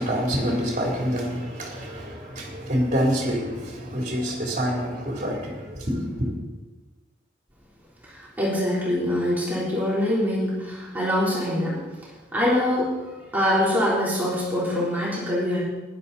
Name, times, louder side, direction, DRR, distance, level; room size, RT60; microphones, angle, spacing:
voice 1, 0.0-6.3, equal, 40° right, -1 dB, 3.2 m, -27 dB
voice 2, 8.1-11.8 12.3-12.9 13.3-15.6, left 1 dB, 10° right, -7 dB, 3.4 m, -24 dB
15.0 x 11.0 x 4.1 m, 1.1 s
head